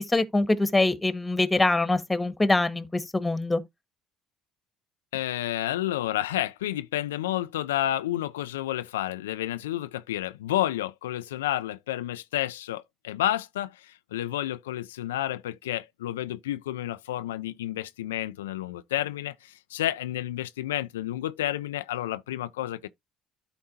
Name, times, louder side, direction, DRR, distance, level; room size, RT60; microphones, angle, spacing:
voice 1, 0.0-3.6, left 2 dB, 15° left, 1.4 m, -24 dB
voice 2, 5.1-22.9, left 13 dB, 90° left, 0.3 m, -30 dB
13.0 x 4.4 x 2.7 m
hypercardioid pair, 65°, 0 cm